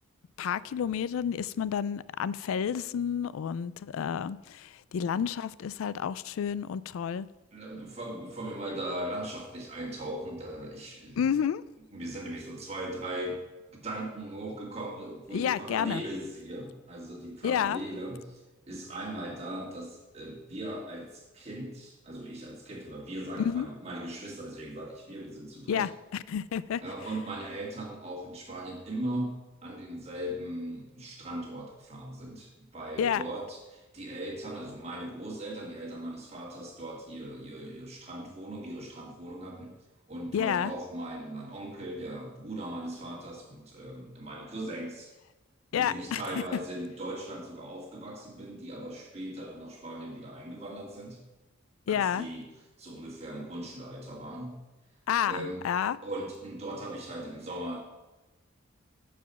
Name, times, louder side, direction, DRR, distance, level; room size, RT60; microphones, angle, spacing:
voice 1, 0.4-7.3 11.2-11.6 15.3-16.0 17.4-17.8 23.4-23.7 25.7-26.8 33.0-33.2 40.3-40.7 45.7-46.4 51.9-52.3 55.1-56.0, left 8 dB, 85° left, 0.3 m, -30 dB
voice 2, 7.5-11.5 11.9-13.4 13.7-18.4 18.7-25.9 26.8-39.8 40.1-45.1 45.7-51.2 51.9-52.5 52.8-54.6 55.3-55.6 56.0-57.8, right 1 dB, 30° right, 2.0 m, -39 dB
6.9 x 5.0 x 6.8 m
head